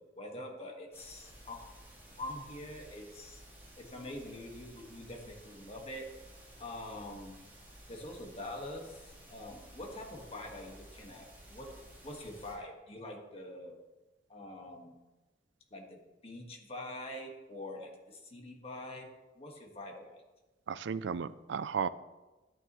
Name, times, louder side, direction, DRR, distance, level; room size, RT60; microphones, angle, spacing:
voice 1, 0.0-1.6 2.2-3.4 3.8-6.1 6.6-7.4 7.9-11.7 12.0-13.8 14.3-14.9 15.7-19.1 19.3-20.2, left 1 dB, 35° left, 1 dB, 1.6 m, -45 dB
sound 1, 0.9-12.5, right 1 dB, 15° right, 3.5 m, -54 dB
voice 2, 20.7-21.9, right 6 dB, 75° right, 16 dB, 0.4 m, -34 dB
11.5 x 9.6 x 3.1 m, 1.1 s
head